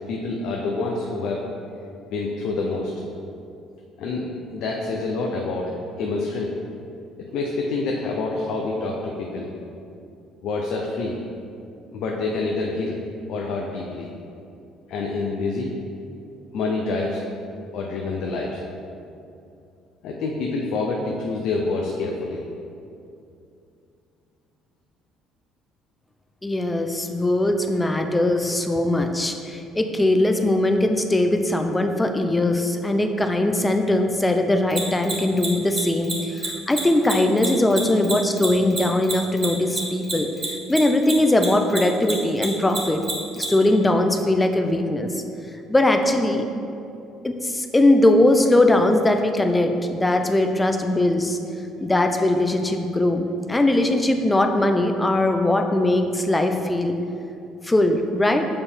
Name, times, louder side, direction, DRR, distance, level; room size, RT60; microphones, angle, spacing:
voice 1, 0.1-1.4 2.1-2.9 4.0-4.2 4.5-5.7 6.0-6.5 7.3-9.5 10.4-11.2 11.9-13.0 13.3-14.1 14.9-15.7 16.5-17.2 17.7-18.6 20.0-22.4, left 3 dB, 70° left, -1 dB, 0.6 m, -27 dB
voice 2, 26.4-43.0 43.3-45.2 45.7-46.5 47.2-51.4 51.8-57.0 57.6-58.5, left 1 dB, 15° left, 6 dB, 0.5 m, -20 dB
Mechanisms, 34.7-41.5 41.7-43.5, right 3 dB, 30° right, 1.5 m, -27 dB
6.8 x 4.2 x 3.5 m, 2.6 s
supercardioid pair, 75°, 0 cm